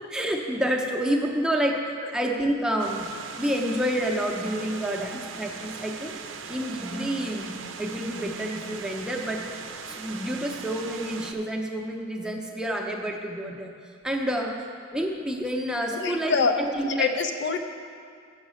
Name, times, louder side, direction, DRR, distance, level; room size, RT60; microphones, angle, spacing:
voice 1, 0.1-1.8 2.1-3.1 3.4-6.1 6.5-9.5 9.9-13.7 14.0-14.6 14.9-17.2, equal, 5° right, 0 dB, 0.7 m, -28 dB
sound 1, 2.8-11.3, right 5 dB, 70° right, 0.5 m, -39 dB
voice 2, 15.9-16.5 16.8-17.7, left 5 dB, 60° left, 6 dB, 0.6 m, -25 dB
8.4 x 6.5 x 6.3 m, 2.2 s
head